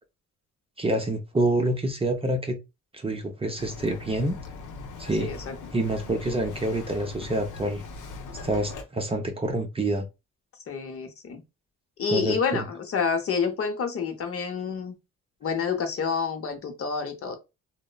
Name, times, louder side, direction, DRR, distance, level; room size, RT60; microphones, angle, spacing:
voice 1, 0.8-2.6 2.9-4.4 5.0-5.3 5.7-7.8 8.4-10.1 12.1-12.6, right 1 dB, 20° right, 0.5 m, -27 dB
Bird vocalization bird call bird song, 3.6-8.8, left 3 dB, 75° left, 0.7 m, -40 dB
voice 2, 5.2-5.5 10.7-11.4 12.0-14.9 15.4-17.4, left 5 dB, 50° left, 0.8 m, -28 dB
2.9 x 2.1 x 2.2 m
cardioid pair, 90°, 30 cm